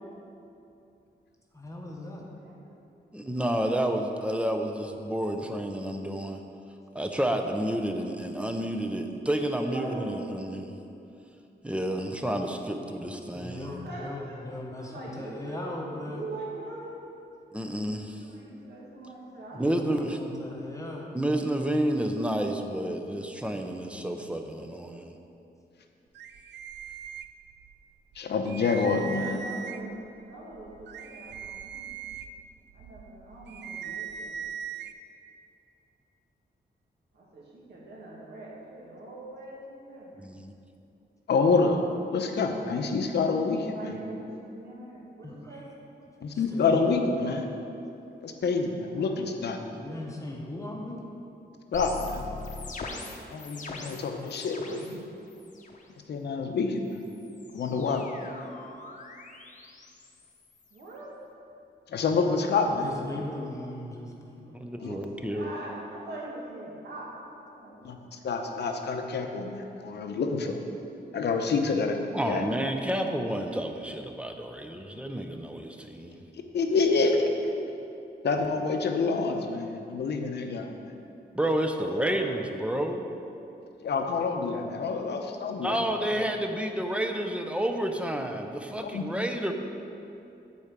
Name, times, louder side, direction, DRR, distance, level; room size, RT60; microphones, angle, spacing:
voice 1, 1.5-2.3 13.3-16.3 19.5-21.1 45.2-45.6 46.3-46.8 49.7-51.0 62.7-64.6, left 1 dB, 20° left, -1 dB, 0.9 m, -39 dB
voice 2, 2.3-2.8 7.4-7.5 9.7-10.0 13.6-14.4 14.8-16.9 18.2-20.6 29.4-29.9 30.3-31.9 32.7-34.3 37.1-40.3 43.7-45.6 48.9-49.2 60.7-61.1 64.8-67.9 81.7-82.3, right 2 dB, 70° right, -4 dB, 2.0 m, -43 dB
voice 3, 3.1-6.4 6.9-10.8 11.6-13.7 17.5-18.2 19.6-20.2 21.1-25.1 40.2-40.5 64.5-65.5 72.1-76.2 81.3-83.1 85.6-89.5, right 1 dB, 5° right, 4 dB, 0.5 m, -30 dB
sound 1, 26.1-27.7 28.1-28.2 28.5-30.0 30.5-34.9, right 8 dB, 90° right, 0.4 m, -40 dB
voice 4, 28.2-29.4 41.3-44.0 46.2-47.5 48.2-49.6 51.7-52.3 53.3-55.0 56.1-57.0 57.5-58.0 61.9-63.1 64.8-65.3 67.8-70.6 71.1-72.0 72.3-72.4 76.5-77.5 78.2-80.7 83.8-85.8 88.8-89.1, left 4 dB, 75° left, 4 dB, 0.8 m, -27 dB
sound 2, 51.7-55.0 55.3-55.8 56.8-61.0, left 3 dB, 45° left, 0.8 m, -43 dB
8.4 x 4.4 x 7.3 m, 2.7 s
wide cardioid pair, 145°, 18 cm